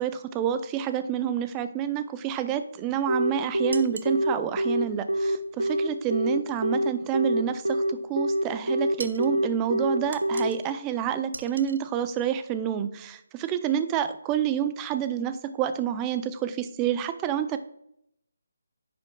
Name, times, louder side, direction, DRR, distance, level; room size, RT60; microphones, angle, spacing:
voice 1, 0.0-17.6, right 9 dB, 15° right, 11 dB, 0.5 m, -28 dB
Telephone, 3.1-10.5, right 1 dB, 90° right, 0.7 m, -25 dB
sound 1, 3.7-4.2 9.0-9.3 10.1-10.7 11.3-11.8, right 3 dB, 65° right, 0.8 m, -40 dB
10.5 x 7.5 x 2.3 m, 0.77 s
figure-of-eight pair, 150°, 0 cm